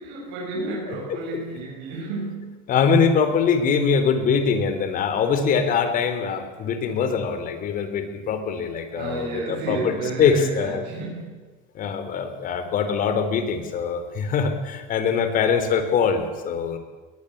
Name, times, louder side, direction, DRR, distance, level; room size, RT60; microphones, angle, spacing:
voice 1, 0.0-2.6 5.3-5.5 8.9-11.4, right 2 dB, 80° right, -4 dB, 7.8 m, -32 dB
voice 2, 0.9-1.2 2.7-10.8 11.7-16.8, left 6 dB, 45° left, 8 dB, 3.9 m, -23 dB
21.0 x 20.5 x 8.3 m, 1.3 s
cardioid pair, 145°, 19 cm